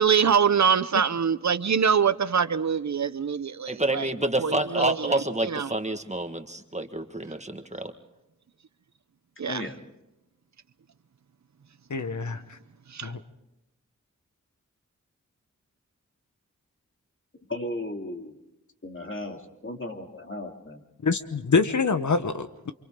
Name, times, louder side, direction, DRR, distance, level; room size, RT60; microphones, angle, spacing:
voice 1, 0.0-4.1 4.4-5.7 9.4-9.6 12.9-13.1, right 7 dB, 65° right, 0.7 m, -24 dB
voice 2, 3.7-7.9, right 1 dB, 20° right, 1.7 m, -28 dB
voice 3, 9.5-9.8 17.3-18.4 18.8-20.8, left 1 dB, 40° left, 2.7 m, -35 dB
voice 4, 11.9-12.6 13.0-13.2 21.0-22.7, left 4 dB, 70° left, 1.1 m, -25 dB
28.5 x 26.0 x 3.8 m
wide cardioid pair, 50°, 31 cm